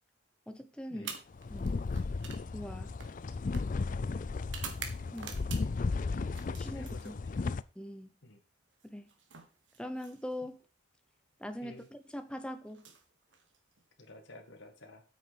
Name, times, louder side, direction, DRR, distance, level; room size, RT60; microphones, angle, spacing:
voice 1, 0.5-1.1 1.5-1.9 2.5-3.0 5.1-5.4 6.6-7.2 7.8-8.1 8.8-9.1 9.8-10.6 11.4-12.9, left 1 dB, 5° left, 9 dB, 0.9 m, -42 dB
sound 1, 0.9-5.9 6.3-7.5 8.7-10.5 11.6-11.9 12.7-13.8, right 6 dB, 65° right, 1.7 m, -48 dB
sound 2, 1.3-7.6, left 4 dB, 40° left, 0.4 m, -35 dB
voice 2, 5.0-5.4 6.5-7.4 8.2-8.4 11.6-11.9 14.0-15.0, left 2 dB, 65° left, 6 dB, 1.9 m, -52 dB
8.6 x 6.5 x 5.2 m, 0.34 s
head